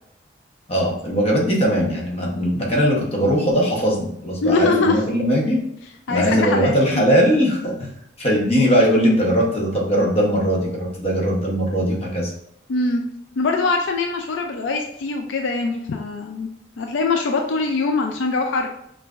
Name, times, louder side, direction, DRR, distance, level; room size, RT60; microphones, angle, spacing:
voice 1, 0.7-5.6 6.1-7.9 8.2-12.3, equal, 30° left, -2 dB, 0.9 m, -20 dB
voice 2, 4.4-5.0 6.1-7.0 12.7-13.0 13.4-16.5 16.8-18.7, left 3 dB, 75° left, 3 dB, 0.4 m, -22 dB
5.6 x 2.5 x 2.4 m, 0.74 s
head